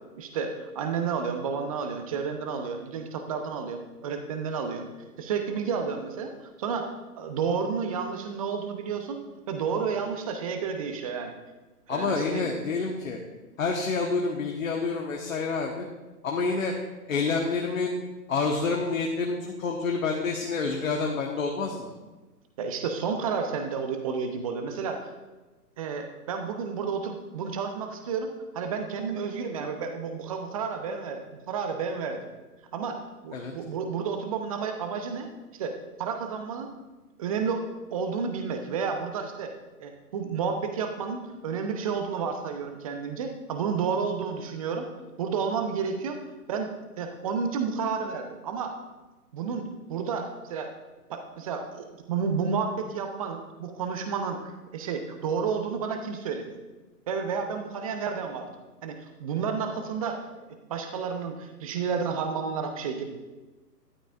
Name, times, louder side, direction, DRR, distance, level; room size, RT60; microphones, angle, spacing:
voice 1, 0.1-4.9 5.2-9.2 9.5-11.3 11.9-12.5 22.6-25.1 25.8-32.2 32.7-36.7 37.2-37.6 37.9-39.5 39.8-44.9 45.2-46.2 46.5-48.7 49.3-50.7 51.1-56.5 57.1-58.5 58.8-60.3 60.7-63.0, right 5 dB, 20° right, 6 dB, 0.7 m, -31 dB
voice 2, 11.9-13.2 13.6-15.9 16.2-16.7 17.1-18.0 18.3-21.9 33.3-33.5, left 4 dB, 55° left, 1 dB, 1.3 m, -28 dB
13.0 x 11.5 x 2.5 m, 1.2 s
figure-of-eight pair, 130°, 49 cm